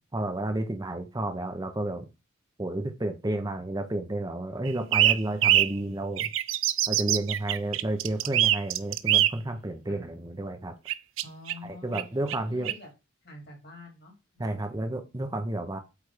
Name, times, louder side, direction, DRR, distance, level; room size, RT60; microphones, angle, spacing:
voice 1, 0.1-2.1 2.6-6.3 6.9-10.7 11.6-12.7 14.4-15.8, right 1 dB, 20° right, 0.7 m, -31 dB
sound 1, 4.7-5.7 6.2-9.3 10.9-11.5 11.9-12.0 12.3-12.4 12.6-12.7, right 13 dB, 65° right, 0.4 m, -23 dB
voice 2, 11.2-12.9 13.2-14.9, left 2 dB, 55° left, 3.1 m, -48 dB
8.2 x 3.3 x 4.9 m
head